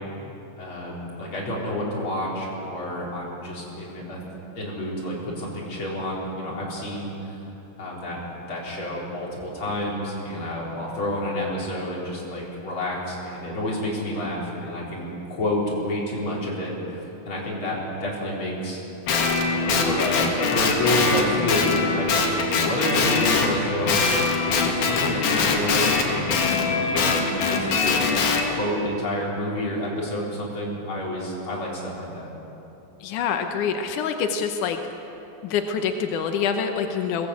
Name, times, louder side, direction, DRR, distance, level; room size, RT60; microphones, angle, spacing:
voice 1, 0.6-7.4 7.8-8.2 8.5-18.8 19.5-28.0 28.5-32.3, left 1 dB, 30° left, -4 dB, 4.8 m, -29 dB
Guitar, 19.1-23.5 23.9-28.4, left 4 dB, 60° left, 3.6 m, -22 dB
voice 2, 33.0-34.8 35.4-37.3, left 6 dB, 80° left, 5 dB, 1.8 m, -26 dB
21.5 x 17.0 x 8.5 m, 3.0 s
omnidirectional pair, 5.0 m